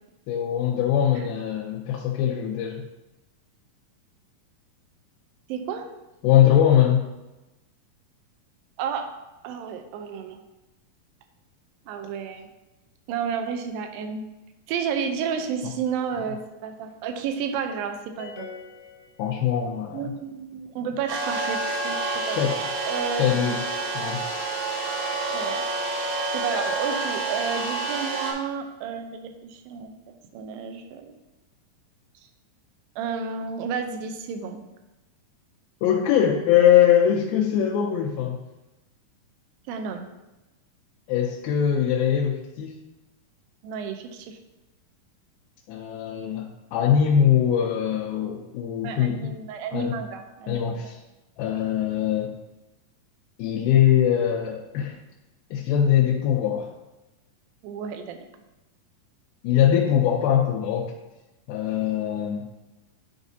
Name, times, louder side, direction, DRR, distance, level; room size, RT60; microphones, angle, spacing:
voice 1, 0.3-2.8 6.2-7.1 16.2-16.3 19.2-20.1 22.4-22.6 23.2-23.6 23.9-24.2 35.8-38.4 41.1-42.7 45.7-49.3 49.7-49.9 50.5-51.0 51.4-52.3 53.4-55.0 55.5-56.7 59.4-60.9 61.5-62.4, left 9 dB, 85° left, -2 dB, 2.5 m, -22 dB
voice 2, 5.5-5.9 8.8-9.2 9.4-10.4 11.9-12.5 13.1-14.2 14.7-18.5 19.9-22.6 22.9-23.6 25.3-25.6 26.3-29.9 30.3-31.2 33.0-34.6 39.7-40.0 43.6-44.4 48.8-50.8 57.6-58.3, right 6 dB, 80° right, 6 dB, 2.4 m, -31 dB
sound 1, 18.2-19.9, left 5 dB, 70° left, 2.0 m, -44 dB
sound 2, 21.1-28.3, right 3 dB, 55° right, 2.1 m, -28 dB
10.5 x 5.0 x 2.7 m, 1.0 s
omnidirectional pair, 4.2 m